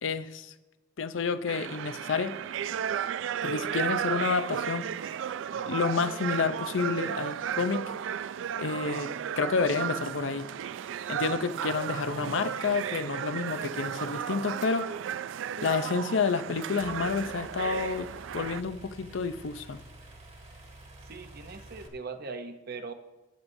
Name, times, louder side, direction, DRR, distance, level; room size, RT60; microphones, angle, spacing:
voice 1, 0.0-0.5 1.0-2.3 3.4-4.9 5.7-7.8 8.6-9.1 9.4-10.5 11.1-14.9 15.6-18.1 18.3-19.8, left 5 dB, 80° left, 12 dB, 0.6 m, -29 dB
sound 1, 1.5-18.6, right 9 dB, 70° right, 0.3 m, -34 dB
sound 2, 16.8-21.9, right 1 dB, 35° right, 1.4 m, -49 dB
voice 2, 21.1-22.9, right 4 dB, 55° right, 8 dB, 0.7 m, -40 dB
13.0 x 9.5 x 2.7 m, 1.0 s
head